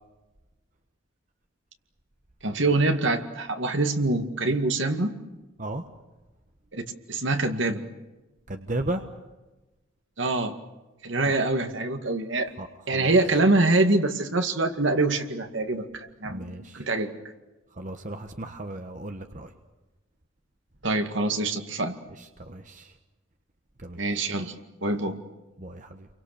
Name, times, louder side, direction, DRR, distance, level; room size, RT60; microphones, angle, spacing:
voice 1, 2.4-5.1 6.7-6.8 7.1-7.8 10.2-10.6 11.0-12.5 12.9-17.1 20.8-22.0 24.0-24.5 24.8-25.2, right 2 dB, 65° right, 6 dB, 2.1 m, -25 dB
voice 2, 8.5-9.1 11.3-11.4 12.6-13.2 16.2-16.8 17.7-19.5 22.1-23.0 23.8-24.0 25.6-26.1, right 1 dB, 40° right, 6 dB, 1.3 m, -35 dB
30.0 x 24.0 x 6.8 m, 1.1 s
head